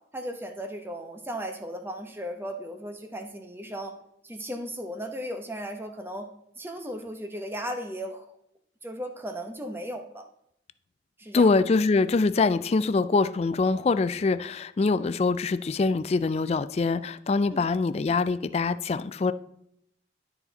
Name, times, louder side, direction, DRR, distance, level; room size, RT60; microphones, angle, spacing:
voice 1, 0.1-3.9 4.2-6.3 6.6-8.2 8.8-10.3 11.2-11.5 17.5-17.7, equal, 10° right, 0.8 m, -36 dB
voice 2, 11.3-19.3, left 4 dB, 35° left, 0.3 m, -24 dB
12.5 x 4.3 x 4.0 m
head